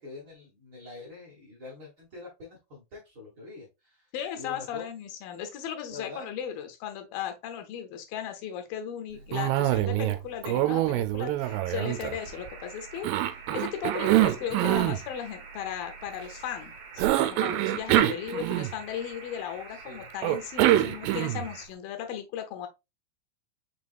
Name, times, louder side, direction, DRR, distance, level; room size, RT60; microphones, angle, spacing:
voice 1, 0.0-4.1 4.4-4.9 5.9-6.3 9.1-9.2 18.0-18.1 19.7-20.1, left 3 dB, 45° right, 1.6 m, -45 dB
voice 2, 4.1-22.7, left 9 dB, 85° left, 2.6 m, -36 dB
Cough, 9.3-10.2 10.4-12.5 13.0-15.0 17.0-19.0 20.2-21.5, right 14 dB, 85° right, 2.3 m, -25 dB
sound 1, 11.5-21.7, right 4 dB, 65° right, 2.0 m, -47 dB
6.0 x 3.4 x 2.4 m
omnidirectional pair, 4.1 m